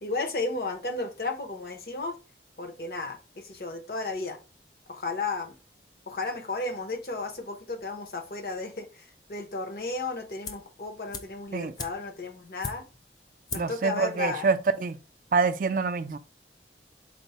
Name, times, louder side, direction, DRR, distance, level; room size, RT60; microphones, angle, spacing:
voice 1, 0.0-2.2 2.6-4.4 4.9-5.6 6.1-12.9 13.5-14.5, left 3 dB, 55° left, 0.7 m, -34 dB
sound 1, 10.4-10.8 11.1-13.1 13.5-13.9 14.1-14.2, left 4 dB, 25° left, 0.3 m, -39 dB
voice 2, 13.5-15.0 15.3-16.2, right 4 dB, 50° right, 0.3 m, -26 dB
4.4 x 2.1 x 4.0 m
head